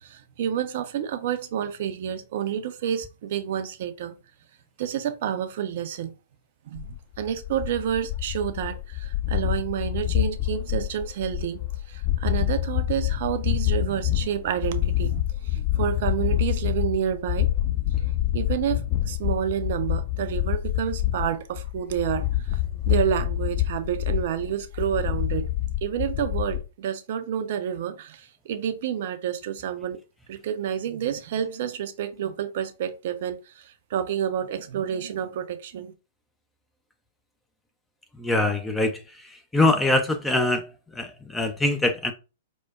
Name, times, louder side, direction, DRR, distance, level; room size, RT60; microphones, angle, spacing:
voice 1, 0.0-4.1 4.8-6.1 6.7-6.9 7.2-11.6 11.9-15.2 15.8-17.5 18.3-18.8 19.1-22.6 22.9-25.5 25.8-30.0 30.3-33.6 33.9-35.9, right 9 dB, 50° right, 0.4 m, -29 dB
sound 1, 6.7-26.6, left 14 dB, 40° left, 0.9 m, -27 dB
voice 2, 38.2-38.9 39.5-40.7 41.0-42.1, left 2 dB, 5° left, 0.4 m, -23 dB
4.5 x 2.1 x 2.3 m
figure-of-eight pair, 110°, 0 cm